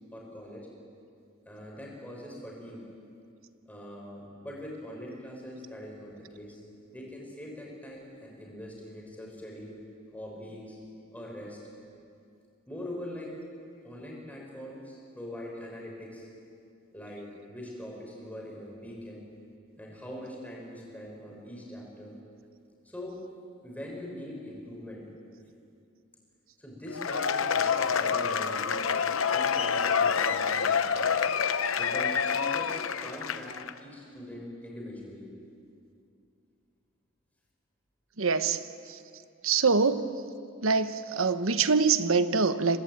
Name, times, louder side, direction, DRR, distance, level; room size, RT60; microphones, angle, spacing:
voice 1, 0.1-0.7 1.5-2.8 3.7-6.6 6.9-9.8 10.1-10.8 11.1-11.6 12.7-13.3 13.8-16.3 16.9-19.3 19.8-22.1 22.8-23.2 23.6-25.0 26.6-31.1 31.8-35.3, left 1 dB, 5° left, -2 dB, 6.2 m, -42 dB
Cheering / Applause / Crowd, 26.9-33.7, left 6 dB, 80° left, 0.9 m, -27 dB
voice 2, 38.2-38.6 39.4-40.1 40.6-42.8, right 4 dB, 80° right, 11 dB, 1.1 m, -24 dB
25.5 x 19.0 x 9.3 m, 2.5 s
head